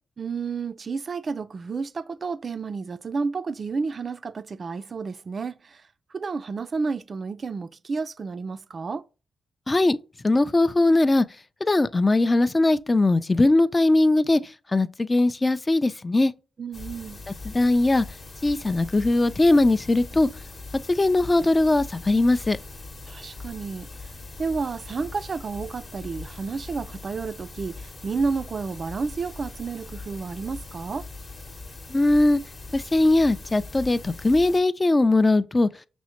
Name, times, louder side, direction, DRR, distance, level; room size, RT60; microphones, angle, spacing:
voice 1, 0.2-5.8 6.1-9.0 16.6-17.2 23.1-23.9 24.4-31.1, right 4 dB, 50° right, 0.3 m, -31 dB
voice 2, 9.7-10.0 10.2-11.3 11.6-14.4 14.7-16.3 17.5-18.1 18.4-20.3 20.9-22.6 31.9-32.4 32.7-35.7, left 2 dB, 25° left, 0.3 m, -20 dB
sound 1, 16.7-34.6, left 3 dB, 45° left, 0.9 m, -41 dB
6.1 x 2.1 x 2.9 m
cardioid pair, 70°, 0 cm